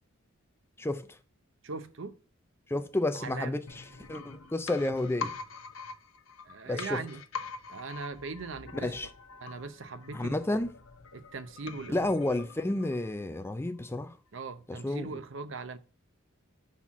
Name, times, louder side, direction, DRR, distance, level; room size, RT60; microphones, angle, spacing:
voice 1, 0.8-1.2 2.7-5.3 6.7-7.0 8.7-9.1 10.1-10.7 11.9-14.2 14.7-15.1, left 2 dB, 10° left, 0.4 m, -31 dB
voice 2, 1.6-2.1 3.1-3.6 6.4-7.2 7.7-8.9 9.4-10.4 11.1-12.0 14.3-15.8, right 4 dB, 60° right, 0.6 m, -40 dB
sound 1, 3.7-13.4 13.7-13.8, left 5 dB, 70° left, 0.9 m, -44 dB
5.7 x 4.2 x 5.8 m
head